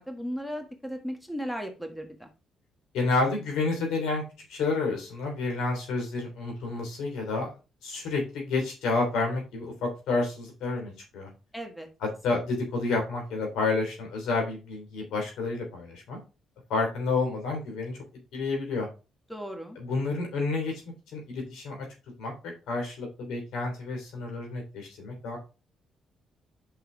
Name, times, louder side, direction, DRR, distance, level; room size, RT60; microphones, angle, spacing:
voice 1, 0.0-2.3 11.5-11.9 19.3-19.8, equal, ahead, 4 dB, 1.4 m, -36 dB
voice 2, 2.9-4.2 4.5-7.5 7.8-11.3 12.0-16.2 16.7-18.0 18.3-18.9 19.8-20.7 21.1-21.9 22.2-25.4, left 3 dB, 85° left, 2 dB, 3.1 m, -30 dB
5.7 x 5.6 x 3.9 m, 0.30 s
cardioid pair, 90°, 0 cm